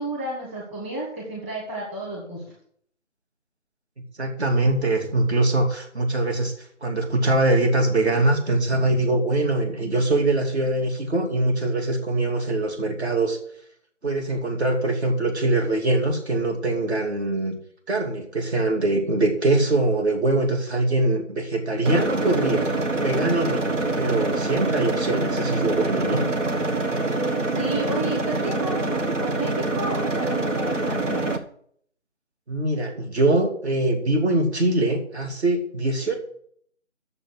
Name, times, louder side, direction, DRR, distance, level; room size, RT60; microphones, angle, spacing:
voice 1, 0.0-2.4 27.4-31.3, right 1 dB, 10° right, -4 dB, 1.5 m, -32 dB
voice 2, 4.2-6.5 6.8-13.4 14.0-17.5 17.9-22.6 23.0-23.6 24.0-26.2 32.5-36.2, right 2 dB, 60° right, 3 dB, 2.8 m, -23 dB
sound 1, 21.8-31.4, right 2 dB, 85° right, 1.4 m, -25 dB
8.8 x 6.8 x 6.4 m, 0.62 s
figure-of-eight pair, 160°, 37 cm